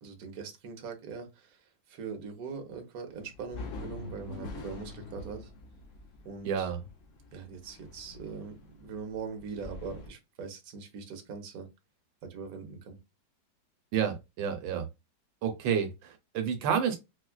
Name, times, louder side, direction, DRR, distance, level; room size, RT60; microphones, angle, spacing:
voice 1, 0.0-5.5 6.2-6.7 7.3-11.7 12.2-13.0, right 5 dB, 60° right, 1.2 m, -41 dB
sound 1, 3.1-10.1, left 3 dB, 60° left, 0.8 m, -45 dB
voice 2, 6.4-6.8 13.9-14.8 15.4-17.0, right 8 dB, 80° right, 1.3 m, -30 dB
4.3 x 2.3 x 2.2 m
omnidirectional pair, 2.1 m